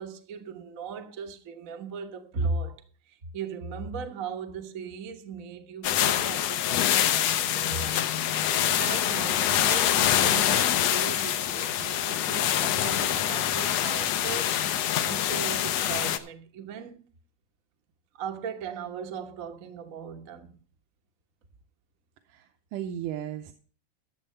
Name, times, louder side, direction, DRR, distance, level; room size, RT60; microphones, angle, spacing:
voice 1, 0.0-8.1 8.6-14.6 15.0-17.0 18.1-20.6, right 5 dB, 70° right, 0.7 m, -37 dB
sound 1, 5.8-16.2, left 11 dB, 70° left, 1.8 m, -25 dB
voice 2, 22.3-23.5, right 10 dB, 90° right, 2.2 m, -35 dB
12.5 x 7.5 x 5.5 m
omnidirectional pair, 3.4 m